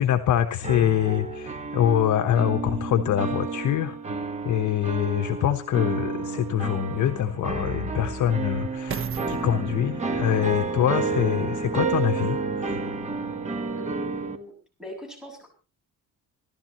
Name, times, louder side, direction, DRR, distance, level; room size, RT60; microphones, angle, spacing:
voice 1, 0.0-4.2 4.4-12.8, left 10 dB, 65° left, 7 dB, 1.1 m, -25 dB
sound 1, 0.6-14.4, right 3 dB, 20° right, 1.4 m, -30 dB
sound 2, 5.9-6.0 6.7-12.0 12.6-12.7, right 7 dB, 40° right, 1.1 m, -39 dB
voice 2, 13.7-14.5 14.8-15.5, left 2 dB, ahead, 2 dB, 6.6 m, -41 dB
27.5 x 12.5 x 3.0 m, 0.34 s
cardioid pair, 160°, 32 cm